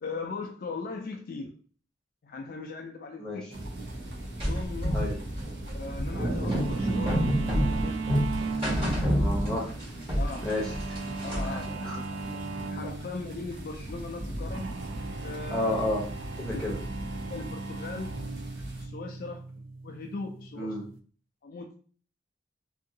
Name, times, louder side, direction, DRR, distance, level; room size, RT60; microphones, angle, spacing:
voice 1, 0.0-1.5 2.2-3.5 4.5-5.1 5.7-8.0 10.2-10.7 11.2-12.2 12.7-14.7 15.2-15.8 16.5-16.7 17.3-18.1 18.8-19.4 19.8-20.8 21.4-21.8, left 3 dB, 50° left, 3 dB, 0.3 m, -39 dB
sound 1, 3.5-18.8, right 1 dB, 60° right, 0.8 m, -37 dB
sound 2, 4.4-9.8 10.1-11.6, equal, 30° right, 1.4 m, -28 dB
sound 3, 6.5-21.0, right 3 dB, 85° right, 0.4 m, -38 dB
voice 2, 9.1-9.7 10.4-10.9 11.4-12.0 15.5-16.1 16.4-16.8 20.6-20.8, left 1 dB, 5° left, -4 dB, 0.8 m, -31 dB
2.7 x 2.6 x 2.6 m, 0.43 s
head